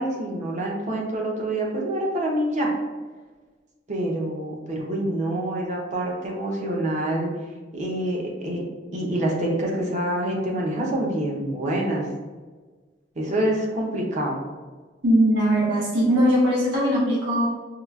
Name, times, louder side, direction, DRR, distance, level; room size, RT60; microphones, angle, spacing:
voice 1, 0.0-2.7 3.9-7.3 7.7-8.6 8.9-12.1 13.2-14.4, right 1 dB, 40° right, -2 dB, 0.7 m, -26 dB
voice 2, 15.0-17.5, equal, 80° right, -5 dB, 0.8 m, -20 dB
4.7 x 2.3 x 2.3 m, 1.4 s
head